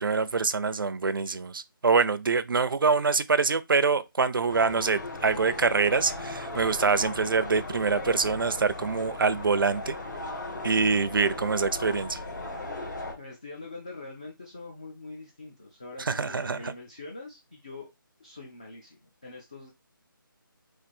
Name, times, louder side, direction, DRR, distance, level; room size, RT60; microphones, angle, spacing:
voice 1, 0.0-10.0 10.6-12.2 16.0-16.7, right 4 dB, 70° right, 0.6 m, -25 dB
sound 1, 4.5-13.1, left 2 dB, 55° left, 1.8 m, -37 dB
voice 2, 13.2-17.9 18.2-19.7, left 3 dB, 15° left, 0.4 m, -43 dB
4.4 x 2.6 x 4.2 m
hypercardioid pair, 175°, 12 cm